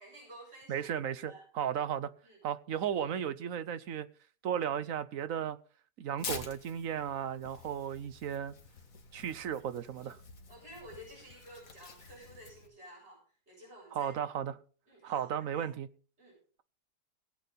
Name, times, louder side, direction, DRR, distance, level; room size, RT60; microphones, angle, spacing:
voice 1, 0.0-0.9 1.3-1.4 2.2-2.4 10.5-13.2 13.5-14.2 14.9-15.7 16.2-16.4, equal, 35° right, 7.7 m, -52 dB
voice 2, 0.7-2.1 2.4-4.1 4.4-5.6 6.0-8.5 9.1-10.2 13.9-14.6 15.0-15.9, right 9 dB, 60° right, 1.0 m, -35 dB
Tearing, 6.2-12.7, left 4 dB, 55° left, 2.1 m, -47 dB
18.5 x 8.5 x 4.1 m
omnidirectional pair, 1.8 m